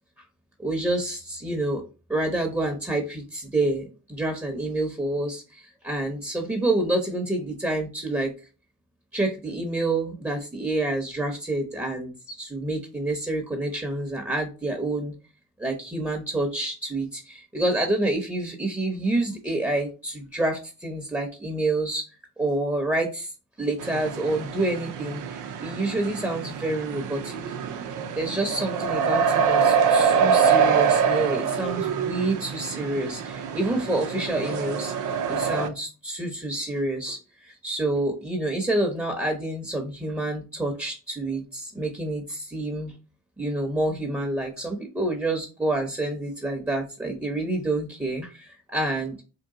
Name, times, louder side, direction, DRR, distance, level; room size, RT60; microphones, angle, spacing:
voice 1, 0.6-1.8 2.1-8.3 9.1-15.1 15.6-22.0 22.4-23.3 23.6-27.4 28.2-42.9 43.4-49.2, right 2 dB, 10° right, 2 dB, 0.9 m, -28 dB
sound 1, 23.8-35.7, right 6 dB, 80° right, 0.6 m, -25 dB
3.7 x 2.4 x 3.7 m, 0.32 s
cardioid pair, 90°, 30 cm